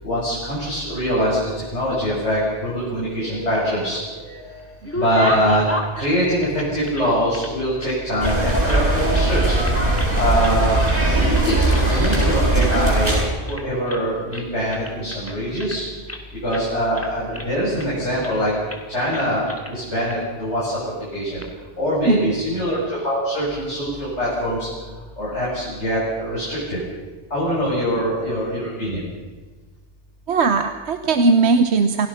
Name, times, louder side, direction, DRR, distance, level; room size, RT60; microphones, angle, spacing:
voice 1, 0.0-1.4 1.7-4.6 4.9-5.7 5.9-9.6 10.1-10.8 11.1-11.6 11.9-13.2 13.5-15.8 16.4-18.5 18.9-20.8 21.1-21.4 21.8-24.7 25.2-26.8 27.3-29.0, equal, 85° left, -8 dB, 7.6 m, -23 dB
sound 1, 3.4-4.2 4.6-7.5 7.8-8.9 9.1-9.3 9.6-10.2 10.4-11.0 11.3-12.3 12.6-12.8 13.0-13.2 13.5-14.1 14.3-16.2 16.5-16.7 16.9-17.9 18.2-18.4 18.7-18.8 19.1-19.7 20.1-20.2 21.1-21.5, left 1 dB, 10° left, 2.3 m, -33 dB
sound 2, 8.2-13.2, right 2 dB, 25° right, 7.7 m, -19 dB
voice 2, 30.3-32.1, right 4 dB, 75° right, 8 dB, 1.3 m, -18 dB
27.5 x 18.0 x 5.8 m, 1.3 s
omnidirectional pair, 1.1 m